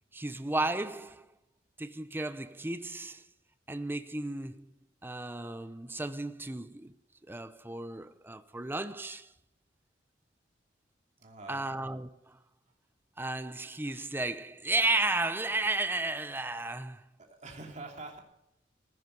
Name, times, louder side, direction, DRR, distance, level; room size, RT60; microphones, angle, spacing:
voice 1, 0.1-1.3 1.8-3.2 3.7-4.7 5.0-6.9 7.3-9.3 11.5-12.4 13.2-17.0, right 2 dB, 10° right, 0.7 m, -33 dB
voice 2, 11.2-11.7 17.2-18.2, right 3 dB, 40° right, 2.9 m, -45 dB
16.0 x 10.0 x 8.0 m
head